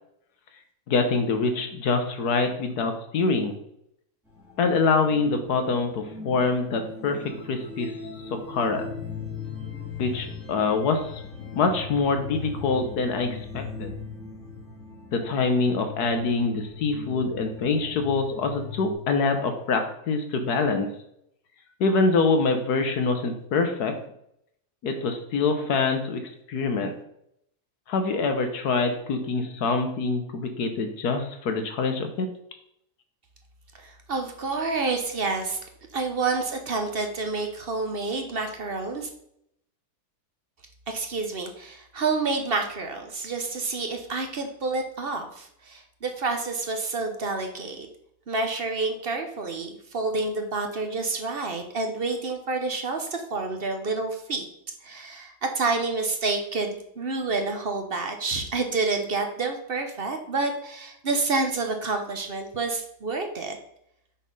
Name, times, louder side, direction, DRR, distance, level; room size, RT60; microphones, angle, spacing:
voice 1, 0.9-3.6 4.6-7.2 7.5-7.9 8.3-8.9 10.0-11.2 11.5-13.9 15.1-20.9 21.8-24.0 24.8-26.2 26.5-26.9 27.9-32.3, left 4 dB, 75° left, 6 dB, 1.5 m, -25 dB
sound 1, 4.3-18.9, left 5 dB, ahead, 2.0 m, -39 dB
voice 2, 33.8-35.6 35.9-39.1 40.9-47.9 48.3-54.5 54.8-63.6, right 3 dB, 45° right, 5 dB, 0.9 m, -28 dB
6.2 x 4.2 x 5.4 m, 0.74 s
omnidirectional pair, 1.7 m